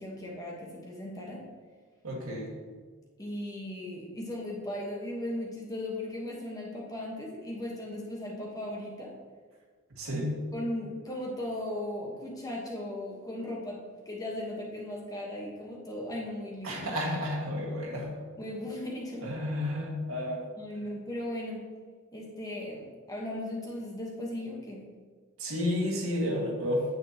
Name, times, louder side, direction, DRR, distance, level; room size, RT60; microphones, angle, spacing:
voice 1, 0.0-1.4 3.2-9.1 10.1-10.3 10.5-13.8 14.0-16.8 18.4-19.3 20.6-21.7 22.1-24.8, left 1 dB, 15° left, -2 dB, 1.2 m, -37 dB
voice 2, 2.0-2.5 10.0-10.4 16.6-18.2 19.2-20.4 25.4-26.8, left 1 dB, 75° right, -2 dB, 2.0 m, -31 dB
9.7 x 8.1 x 2.9 m, 1.5 s
head